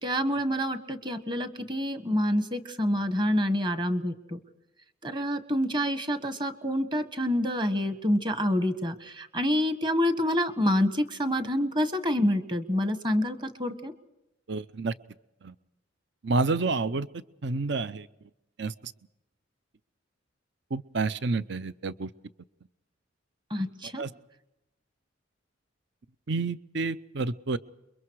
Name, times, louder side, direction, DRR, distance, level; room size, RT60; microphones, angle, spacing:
voice 1, 0.0-4.4 5.0-13.9 23.5-24.0, equal, 25° right, 9 dB, 1.5 m, -27 dB
voice 2, 14.5-14.9 15.4-15.5 16.2-17.1 17.4-18.1 18.6-18.9 20.7-22.1 24.0-24.1 26.3-27.6, right 3 dB, 60° right, 15 dB, 0.7 m, -29 dB
28.5 x 23.0 x 4.8 m, 0.91 s
head